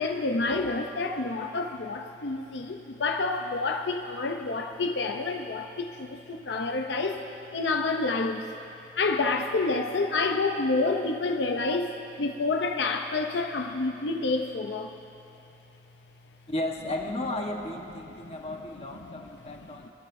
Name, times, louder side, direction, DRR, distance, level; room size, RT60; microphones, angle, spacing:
voice 1, 0.0-8.6 9.0-14.9 18.2-18.3, left 3 dB, 80° left, 4 dB, 0.7 m, -28 dB
voice 2, 16.5-19.9, left 1 dB, 35° left, 1 dB, 1.2 m, -34 dB
25.5 x 13.5 x 2.7 m, 2.8 s
head